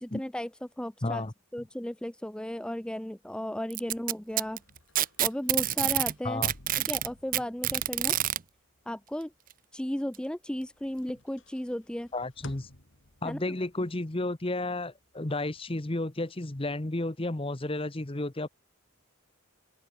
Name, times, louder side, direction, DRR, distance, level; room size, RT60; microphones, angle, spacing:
voice 1, 0.0-1.2 1.5-4.6 5.2-6.4 6.8-8.2 8.9-9.3 9.7-12.1 13.2-13.6, equal, 5° left, 0.4 m, -35 dB
voice 2, 1.0-1.3 6.2-6.5 12.1-12.7 13.2-18.5, left 2 dB, 25° left, 1.0 m, -32 dB
Packing tape duct tape, 3.7-6.1 6.4-8.4 9.5-9.6 10.1-10.2 11.1-11.2, right 13 dB, 40° right, 0.7 m, -27 dB
sound 1, 3.8-10.3 10.6-16.0, left 2 dB, 60° left, 3.4 m, -54 dB
head